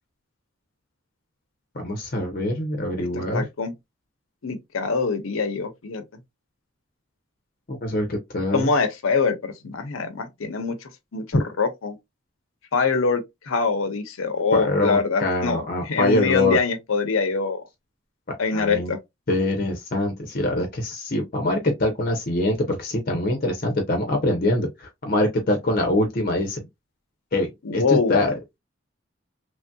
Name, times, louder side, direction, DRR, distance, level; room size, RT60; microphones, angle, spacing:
voice 1, 1.7-3.4 7.7-8.7 14.5-16.6 18.3-19.0 19.3-26.7 27.3-28.3, left 1 dB, 45° left, 0.6 m, -24 dB
voice 2, 3.0-3.7 4.4-6.0 8.5-12.0 12.7-17.6 18.4-19.0 27.6-28.3, left 4 dB, 85° left, 0.6 m, -24 dB
3.1 x 2.7 x 2.2 m
head